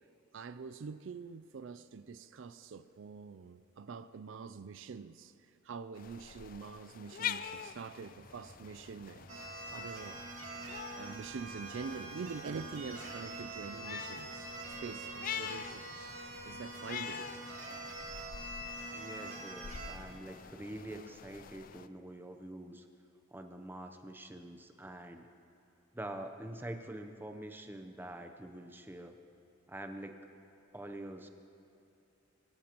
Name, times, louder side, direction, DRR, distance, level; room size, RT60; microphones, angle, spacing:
voice 1, 0.3-5.3 5.6-9.3 9.7-10.2 11.0-16.1 16.4-17.3, right 5 dB, 70° right, 0.4 m, -45 dB
sound 1, 5.9-21.9, left 8 dB, 45° left, 0.3 m, -46 dB
sound 2, 8.1-21.0, right 1 dB, 40° right, 1.8 m, -59 dB
sound 3, 9.3-19.9, right 2 dB, 90° right, 2.3 m, -45 dB
voice 2, 18.9-22.8 23.3-25.3 25.9-29.2 29.7-30.3 30.7-31.3, right 1 dB, 10° right, 0.7 m, -45 dB
23.0 x 16.0 x 3.0 m
head